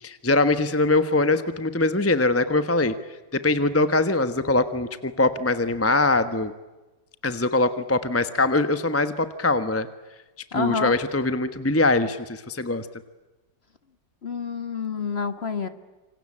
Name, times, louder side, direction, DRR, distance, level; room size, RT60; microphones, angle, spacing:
voice 1, 0.0-2.9 3.3-6.5 7.2-9.9 10.5-12.9, left 2 dB, 10° left, 11 dB, 1.0 m, -22 dB
voice 2, 10.5-10.9 14.2-15.7, left 5 dB, 35° left, 11 dB, 1.7 m, -28 dB
27.5 x 25.0 x 8.7 m, 1.2 s
omnidirectional pair, 1.9 m